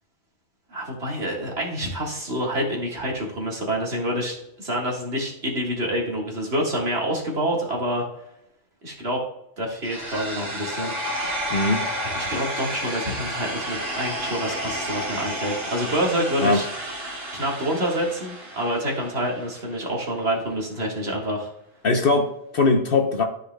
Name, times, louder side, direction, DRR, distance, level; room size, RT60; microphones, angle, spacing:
voice 1, 0.7-8.0 8.8-9.2 9.6-10.9 12.0-16.7 17.3-21.5, equal, 55° right, -2 dB, 2.0 m, -27 dB
sound 1, 9.8-19.8, equal, 80° right, 2.7 m, -31 dB
voice 2, 11.5-11.9 16.4-16.6 21.8-23.2, left 3 dB, 55° left, 5 dB, 0.9 m, -20 dB
13.5 x 5.1 x 2.2 m, 0.78 s
omnidirectional pair, 1.3 m